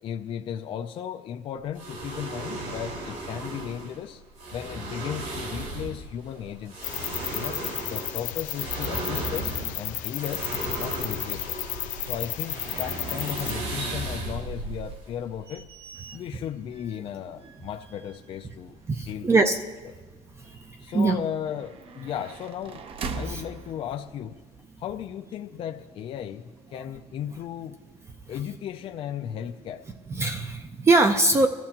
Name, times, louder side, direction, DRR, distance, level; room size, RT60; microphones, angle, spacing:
voice 1, 0.0-4.2 4.5-6.9 7.3-10.5 10.8-11.7 12.0-15.7 16.1-18.8 19.1-19.4 20.8-24.4 24.8-27.8 28.3-29.8, left 9 dB, 45° left, 6 dB, 0.4 m, -35 dB
sound 1, 1.8-15.6, right 2 dB, 85° right, 4.4 m, -35 dB
sound 2, 6.8-13.5, left 12 dB, 85° left, 0.9 m, -33 dB
sound 3, 13.8-24.6, right 4 dB, 45° right, 0.8 m, -43 dB
voice 2, 18.9-19.6 20.4-21.2 23.3-23.4 30.1-31.5, right 3 dB, 20° right, 6 dB, 0.5 m, -22 dB
24.5 x 14.0 x 2.9 m, 1.3 s
cardioid pair, 160°, 13 cm